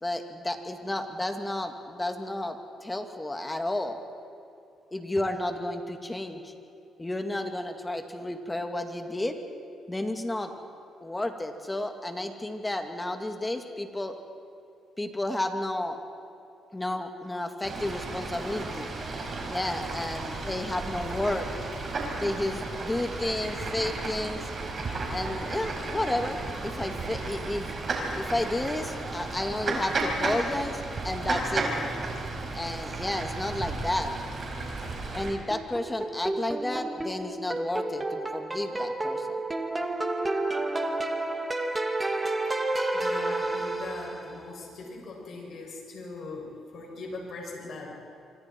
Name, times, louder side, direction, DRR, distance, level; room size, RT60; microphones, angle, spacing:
voice 1, 0.0-4.0 4.9-6.5 7.0-9.4 9.9-10.5 11.0-14.2 15.0-16.0 16.7-18.9 19.5-21.5 22.2-24.4 25.1-27.7 28.1-31.7 32.5-34.1 35.1-39.4, left 1 dB, 15° left, 5 dB, 2.2 m, -32 dB
Fowl / Bird, 17.6-35.3, right 3 dB, 45° right, 5.5 m, -33 dB
sound 1, 35.5-44.4, right 2 dB, 15° right, 2.0 m, -30 dB
voice 2, 42.9-48.0, left 3 dB, 65° left, -1 dB, 6.8 m, -40 dB
26.0 x 25.5 x 4.6 m, 2.6 s
cardioid pair, 90°, 0 cm